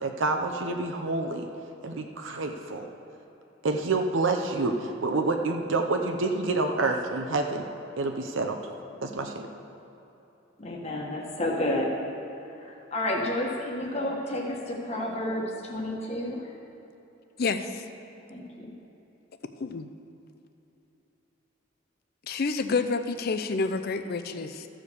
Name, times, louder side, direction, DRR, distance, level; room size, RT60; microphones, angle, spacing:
voice 1, 0.0-1.5 1.8-2.9 3.6-7.6 8.0-8.6 9.0-9.5, right 3 dB, 70° right, 4 dB, 0.7 m, -28 dB
voice 2, 10.6-11.9 12.5-16.5 18.3-18.8, left 1 dB, 30° left, -2 dB, 1.2 m, -31 dB
voice 3, 17.4-17.8 19.6-19.9 22.3-24.7, left 4 dB, 50° left, 9 dB, 0.5 m, -29 dB
14.0 x 5.0 x 6.9 m, 3.0 s
head